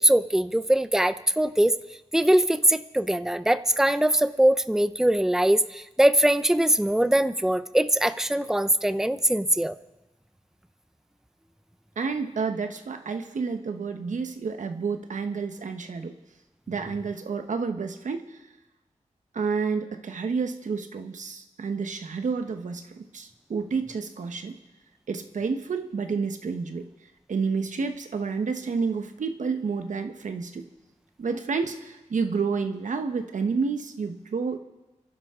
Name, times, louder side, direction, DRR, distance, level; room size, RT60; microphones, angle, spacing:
voice 1, 0.0-1.8 2.1-9.8, right 1 dB, 5° right, 12 dB, 0.7 m, -22 dB
voice 2, 12.0-16.1 16.7-18.4 19.3-24.5 25.1-26.9 27.3-30.7 31.2-34.6, right 5 dB, 85° right, 7 dB, 1.1 m, -30 dB
29.5 x 11.5 x 3.7 m, 1.1 s
cardioid pair, 55°, 12 cm